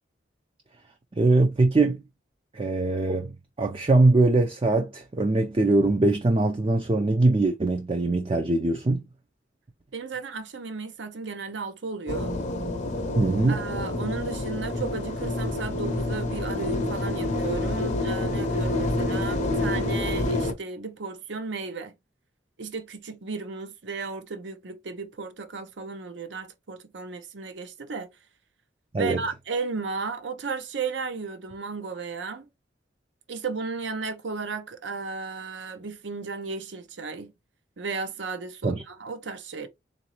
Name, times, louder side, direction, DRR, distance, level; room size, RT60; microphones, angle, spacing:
voice 1, 1.2-2.0 2.5-3.3 3.6-9.0 13.1-13.6 28.9-29.2 38.6-38.8, right 2 dB, 30° right, 0.5 m, -22 dB
voice 2, 9.9-12.3 13.5-21.9 22.6-28.1 29.0-32.5 33.3-37.3 37.8-39.7, right 4 dB, 70° right, 0.7 m, -34 dB
sound 1, 12.1-20.5, left 1 dB, 40° left, 0.6 m, -28 dB
3.9 x 2.6 x 2.9 m
head